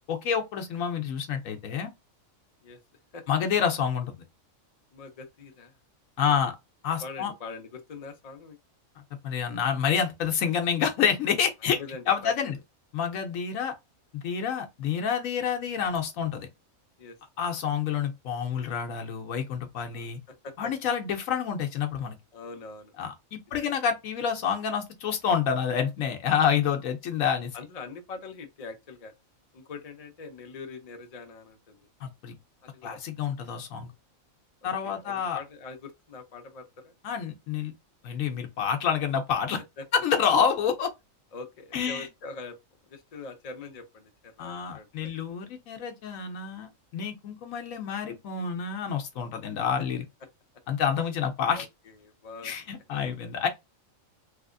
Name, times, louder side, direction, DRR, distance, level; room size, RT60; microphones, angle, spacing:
voice 1, 0.1-1.9 3.3-4.1 6.2-6.6 6.8-7.3 9.2-11.8 12.1-12.6 12.9-13.7 14.1-16.5 17.4-20.2 20.6-22.2 23.0-27.5 32.0-32.4 32.8-33.9 34.6-35.4 37.0-37.7 38.0-39.6 39.9-40.9 41.7-42.1 44.4-50.0 50.7-51.7 52.4-53.5, left 7 dB, 80° left, 1.0 m, -28 dB
voice 2, 4.9-5.8 6.2-6.4 7.0-8.6 11.7-12.6 17.0-17.2 19.9-20.7 22.3-22.9 23.6-23.8 27.5-29.1 29.5-31.9 32.6-33.0 34.6-36.9 39.8-39.9 41.3-42.6 42.9-45.1 51.5-52.6 53.0-53.1, left 4 dB, 45° left, 0.5 m, -43 dB
3.3 x 2.8 x 2.5 m
omnidirectional pair, 1.4 m